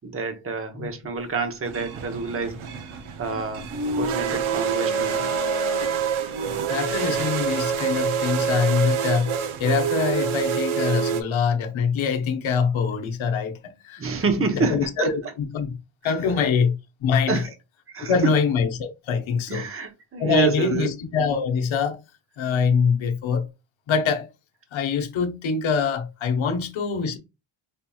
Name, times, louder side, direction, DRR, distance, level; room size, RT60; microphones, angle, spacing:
voice 1, 0.0-2.6 2.9-3.7 4.0-5.3 14.0-15.3 16.1-16.2 17.3-17.5 17.9-18.1 19.5-20.9, right 4 dB, 25° right, 0.8 m, -28 dB
sound 1, 1.2-1.4 1.8-8.8, left 9 dB, 35° left, 0.5 m, -39 dB
sound 2, 1.6-11.2, right 7 dB, 75° right, 0.7 m, -26 dB
voice 2, 6.7-9.3 9.6-14.1 14.5-15.7 16.0-17.4 18.1-19.7 20.2-22.0 22.4-23.5 23.9-24.3 24.7-27.2, left 6 dB, 70° left, 0.9 m, -24 dB
5.2 x 2.8 x 2.3 m
cardioid pair, 125°, 49 cm